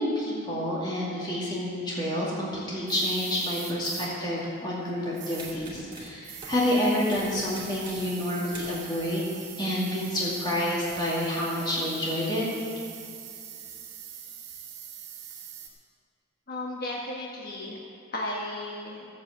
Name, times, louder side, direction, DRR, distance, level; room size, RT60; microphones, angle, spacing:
voice 1, 0.0-12.5, left 1 dB, 20° left, -6 dB, 2.3 m, -29 dB
sound 1, 2.9-15.7, right 9 dB, 60° right, 2.0 m, -43 dB
sound 2, 5.4-6.7 7.1-8.2 8.5-8.8 10.3-11.5, right 2 dB, 20° right, 2.4 m, -46 dB
voice 2, 16.5-17.8 18.1-19.1, left 1 dB, 45° left, -3 dB, 1.3 m, -34 dB
14.5 x 7.4 x 8.0 m, 2.5 s
head